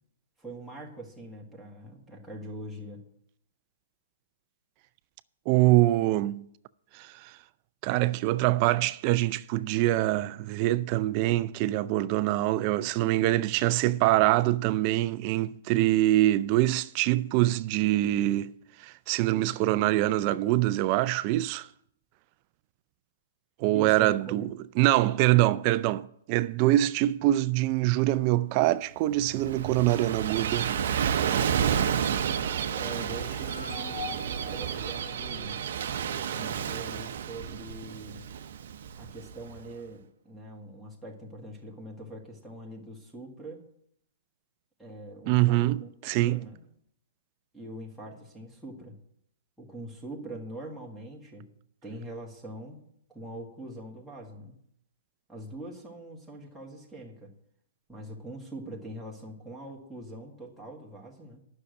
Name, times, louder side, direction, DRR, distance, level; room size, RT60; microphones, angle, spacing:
voice 1, 0.4-3.0 23.7-24.5 32.7-35.6 36.0-38.2 39.0-43.7 44.8-46.6 47.5-49.0 49.6-51.5 51.8-52.8 53.1-54.6 55.3-57.3 57.9-61.4, right 1 dB, ahead, 1.8 m, -43 dB
voice 2, 5.5-6.4 6.9-7.3 7.8-18.5 18.8-21.7 23.6-24.5 24.8-30.7 45.3-46.5, right 16 dB, 35° right, 0.4 m, -24 dB
Gull seagull / Waves surf, 29.1-39.6, right 8 dB, 60° right, 0.7 m, -31 dB
sound 1, 33.0-36.4, left 6 dB, 80° left, 1.8 m, -44 dB
9.6 x 6.6 x 8.3 m
hypercardioid pair, 150°, 0 cm